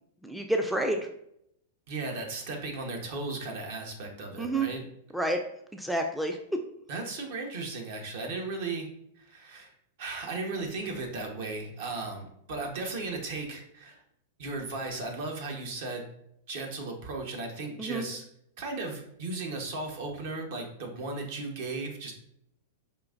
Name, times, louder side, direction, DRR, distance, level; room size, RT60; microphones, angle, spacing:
voice 1, 0.2-1.0 4.4-4.7 5.1-5.4 5.7-6.4 17.8-18.1, right 1 dB, 5° right, 4 dB, 0.3 m, -28 dB
voice 2, 1.9-4.8 6.9-8.9 9.2-9.7 10.0-14.0 14.4-16.1 16.5-18.2 18.6-22.1, right 3 dB, 65° right, 2 dB, 1.0 m, -36 dB
4.9 x 2.6 x 2.5 m, 0.74 s
hypercardioid pair, 120°, 0 cm